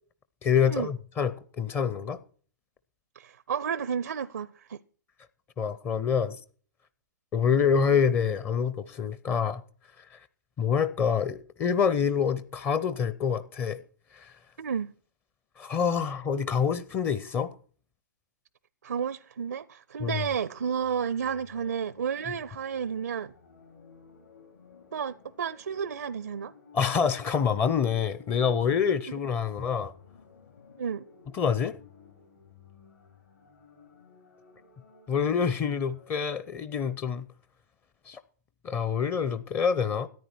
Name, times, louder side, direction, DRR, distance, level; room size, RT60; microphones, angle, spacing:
voice 1, 0.4-2.2 5.6-6.4 7.3-9.6 10.0-10.1 10.6-13.8 14.1-14.3 15.6-17.5 20.0-20.2 26.7-29.9 31.3-31.8 35.1-37.3 38.1-38.2 38.6-40.1, left 7 dB, 20° left, 0.6 m, -26 dB
voice 2, 3.2-4.8 14.6-14.9 18.8-23.3 24.9-26.5 30.8-31.1, right 7 dB, 65° right, 0.5 m, -31 dB
sound 1, 20.2-36.4, left 5 dB, 70° left, 7.0 m, -55 dB
13.5 x 10.0 x 4.5 m
figure-of-eight pair, 115°, 10 cm